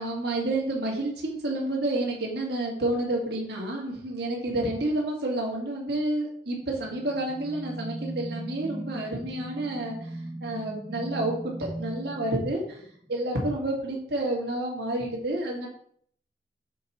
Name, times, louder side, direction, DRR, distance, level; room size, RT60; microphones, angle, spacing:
voice 1, 0.0-12.8 13.1-15.7, right 1 dB, 65° right, -1 dB, 1.9 m, -29 dB
sound 1, 6.6-13.1, right 1 dB, 10° right, 0.6 m, -38 dB
6.4 x 4.8 x 4.2 m, 0.62 s
head